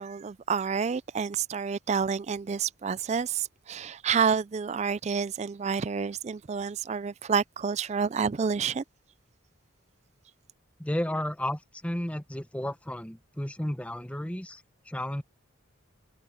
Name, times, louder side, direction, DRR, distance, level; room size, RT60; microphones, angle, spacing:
voice 1, 0.0-8.8, right 6 dB, 30° right, 0.3 m, -29 dB
voice 2, 10.8-15.2, left 1 dB, 5° left, 0.8 m, -33 dB
open air
head